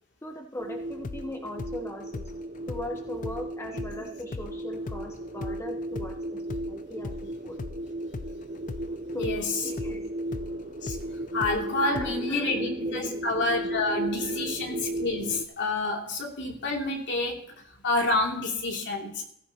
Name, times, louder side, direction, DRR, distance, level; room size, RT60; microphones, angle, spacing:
voice 1, 0.2-2.2 2.7-6.4 6.7-7.6 9.1-10.1 11.8-13.2 13.7-13.8 14.2-14.3, left 1 dB, 15° left, 2 dB, 1.1 m, -39 dB
sound 1, 0.6-15.4, right 1 dB, 40° right, 0.7 m, -35 dB
sound 2, 0.9-7.8 8.1-12.4, left 3 dB, 40° left, 0.5 m, -39 dB
voice 2, 9.1-9.6 10.8-11.0 11.3-19.3, left 2 dB, 55° left, 1 dB, 2.8 m, -29 dB
16.0 x 15.0 x 2.9 m, 0.74 s
head